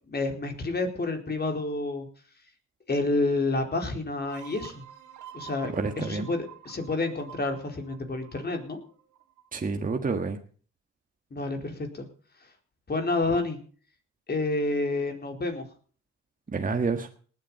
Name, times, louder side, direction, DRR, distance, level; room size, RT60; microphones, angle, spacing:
voice 1, 0.1-2.1 2.9-4.8 5.3-8.8 11.3-12.1 12.4-12.5 12.9-13.6 14.3-15.7, left 2 dB, 35° left, 5 dB, 4.3 m, -29 dB
sound 1, 4.2-9.7, right 10 dB, 85° right, 3.1 m, -48 dB
voice 2, 5.7-6.3 9.5-10.4 16.5-17.1, right 4 dB, 25° right, 5 dB, 1.7 m, -28 dB
19.0 x 9.0 x 5.5 m, 0.43 s
cardioid pair, 90°, 30 cm